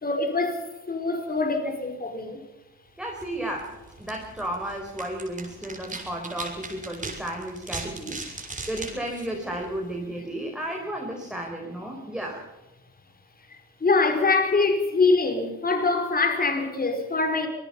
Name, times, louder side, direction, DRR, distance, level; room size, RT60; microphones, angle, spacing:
voice 1, 0.0-0.6 0.9-2.4 13.8-17.5, left 3 dB, 30° left, 4.9 m, -24 dB
voice 2, 3.0-3.7 4.0-8.2 8.7-12.5, right 1 dB, 5° right, 4.7 m, -33 dB
sound 1, 3.1-10.0, right 3 dB, 25° right, 6.1 m, -40 dB
26.0 x 19.5 x 5.7 m
cardioid pair, 90°, 30 cm